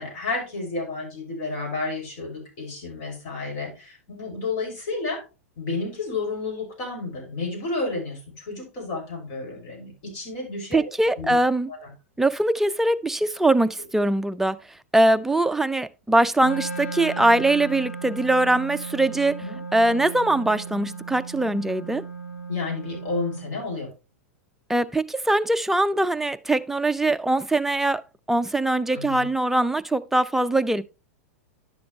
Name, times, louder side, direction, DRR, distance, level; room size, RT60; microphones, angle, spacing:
voice 1, 0.0-5.2 5.6-10.9 11.2-11.4 11.7-11.9 19.4-19.6 22.5-23.9 28.9-29.3, left 3 dB, 50° left, 6.0 m, -31 dB
voice 2, 10.7-11.7 12.2-14.6 14.9-19.4 19.7-22.0 24.7-28.0 28.3-30.8, right 2 dB, 5° right, 0.5 m, -22 dB
Wind instrument woodwind instrument, 16.4-23.5, right 4 dB, 90° left, 3.0 m, -36 dB
10.5 x 7.0 x 3.2 m
hypercardioid pair, 100°, 8 cm